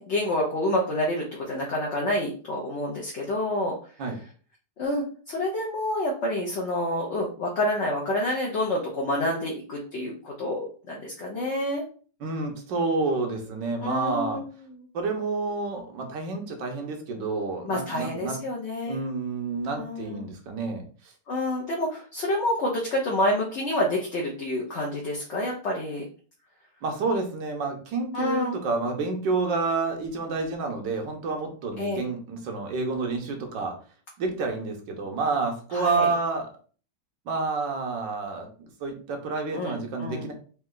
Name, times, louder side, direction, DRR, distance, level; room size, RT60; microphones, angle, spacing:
voice 1, 0.0-3.7 4.8-11.8 13.8-14.9 17.6-19.0 19.7-20.2 21.3-26.0 28.1-28.6 31.8-32.0 35.7-36.1 39.5-40.3, left 1 dB, 50° left, -2 dB, 0.9 m, -28 dB
voice 2, 12.2-14.4 14.9-18.4 18.9-21.1 26.8-33.7 34.2-36.5 37.3-40.3, right 3 dB, 80° right, 3 dB, 1.6 m, -29 dB
4.3 x 2.9 x 3.7 m, 0.41 s
omnidirectional pair, 1.9 m